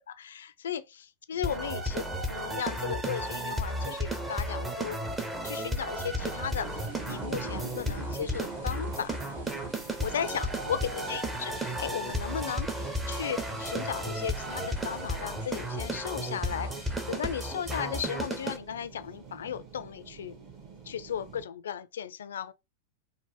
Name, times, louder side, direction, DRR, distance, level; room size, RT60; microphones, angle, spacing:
voice 1, 0.2-5.0 5.4-9.2 10.0-20.3 20.9-22.5, left 8 dB, 65° left, 0.3 m, -36 dB
sound 1, 1.4-18.6, right 1 dB, 10° right, 0.6 m, -34 dB
sound 2, 2.4-21.4, right 5 dB, 35° right, 1.1 m, -47 dB
sound 3, 6.5-17.5, right 2 dB, 65° right, 1.3 m, -54 dB
3.9 x 2.1 x 2.7 m
figure-of-eight pair, 90°, 0 cm